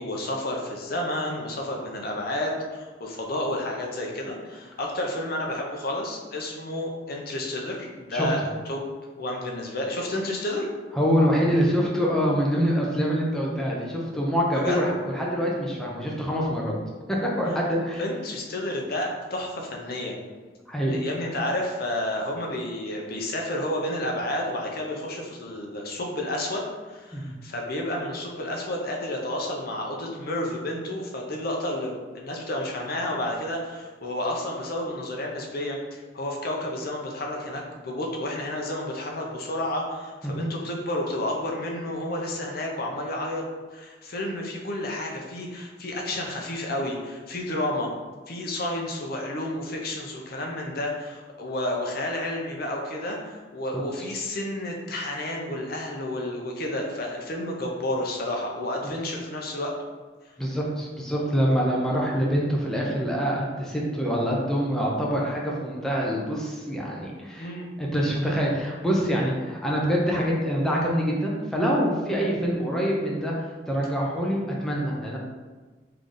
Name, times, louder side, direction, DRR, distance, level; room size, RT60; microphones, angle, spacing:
voice 1, 0.0-8.4 8.7-8.8 9.2-10.7 14.5-14.9 18.0-20.2 20.9-43.4 43.7-47.9 48.3-59.7 67.4-67.7, left 1 dB, 55° left, 0 dB, 0.7 m, -31 dB
voice 2, 10.9-16.7 17.4-18.0 20.7-21.0 27.1-27.3 40.2-40.5 60.4-67.5 67.8-75.2, equal, 5° left, -4 dB, 0.7 m, -25 dB
3.9 x 3.3 x 3.8 m, 1.3 s
head